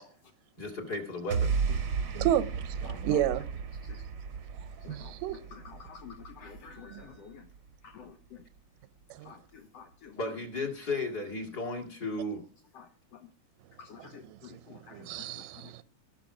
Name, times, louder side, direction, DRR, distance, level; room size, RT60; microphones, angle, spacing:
voice 1, 0.6-1.6 10.1-12.4, left 2 dB, 30° left, 2.7 m, -34 dB
sound 1, 1.3-7.7, right 5 dB, 60° right, 1.2 m, -34 dB
voice 2, 2.2-3.6 4.6-5.4 6.9-7.0 9.1-9.3 14.0-15.8, right 11 dB, 85° right, 2.4 m, -32 dB
voice 3, 5.9-7.3 7.9-8.0 9.3-9.4 9.7-9.8 13.9-14.2, left 7 dB, 65° left, 1.7 m, -48 dB
19.0 x 6.7 x 4.9 m
omnidirectional pair, 3.8 m